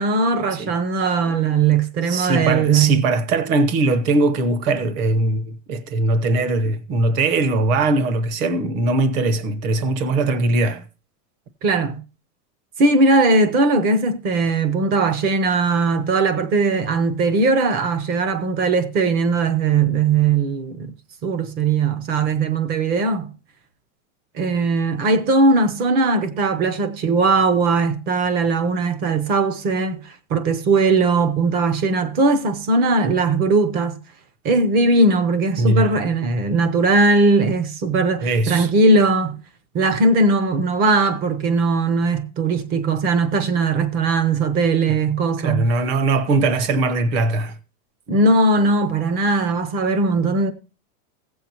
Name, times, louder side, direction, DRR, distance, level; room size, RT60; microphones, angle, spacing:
voice 1, 0.0-3.1 11.6-12.0 12.8-20.9 21.2-23.3 24.3-34.0 34.4-39.4 39.7-45.7 48.1-50.5, right 3 dB, 20° right, 0.6 m, -19 dB
voice 2, 2.1-10.8 35.6-35.9 38.2-38.7 44.9-45.0 45.4-47.6, right 2 dB, 40° right, 1.1 m, -20 dB
15.5 x 7.8 x 2.9 m
supercardioid pair, 170°, 42 cm